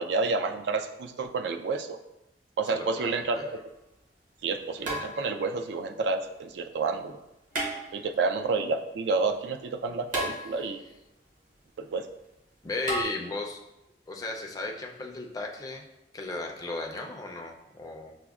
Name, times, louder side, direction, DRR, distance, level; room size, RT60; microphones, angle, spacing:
voice 1, 0.0-2.0 2.6-3.4 4.4-7.2 7.9-10.8 11.8-12.1, right 4 dB, 70° right, 6 dB, 0.3 m, -29 dB
voice 2, 2.7-3.5 12.6-13.6 14.1-15.8 16.1-18.1, left 2 dB, 20° left, 1 dB, 0.4 m, -35 dB
sound 1, 3.5-3.6 4.8-5.6 7.5-8.3 10.1-10.9 12.9-13.0, right 1 dB, 45° right, 0.9 m, -33 dB
5.9 x 2.1 x 2.3 m, 0.91 s
head